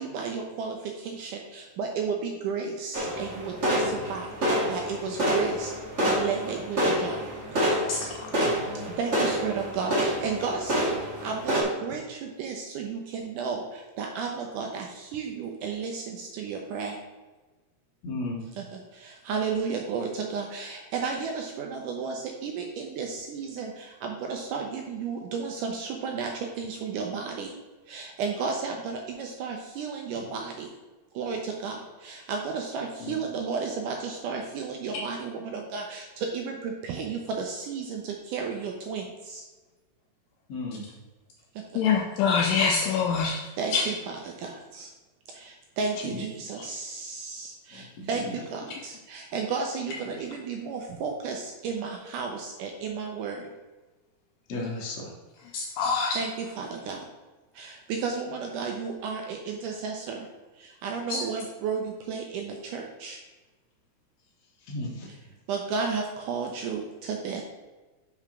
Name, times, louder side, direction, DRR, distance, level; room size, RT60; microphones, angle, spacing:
voice 1, 0.0-5.7 6.0-7.8 8.9-17.0 18.5-27.5 27.9-30.7 31.1-39.4 41.5-41.6 43.6-44.9 45.3-53.5 56.1-57.1 57.5-60.3 60.5-63.2 65.1-65.2 65.5-67.4, right 5 dB, 75° right, 2 dB, 2.0 m, -33 dB
sound 1, 2.9-11.6, equal, 30° right, 1.3 m, -28 dB
voice 2, 7.9-8.3 41.8-43.4 43.7-43.9 46.6-46.7 55.5-56.2 61.1-61.2, left 5 dB, 80° left, 1 dB, 2.2 m, -25 dB
voice 3, 8.4-8.8 18.0-18.4 33.0-33.1 40.5-40.8 54.5-55.1 64.7-65.1, left 2 dB, 55° left, -1 dB, 2.3 m, -34 dB
6.0 x 5.4 x 5.8 m, 1.2 s
omnidirectional pair, 4.1 m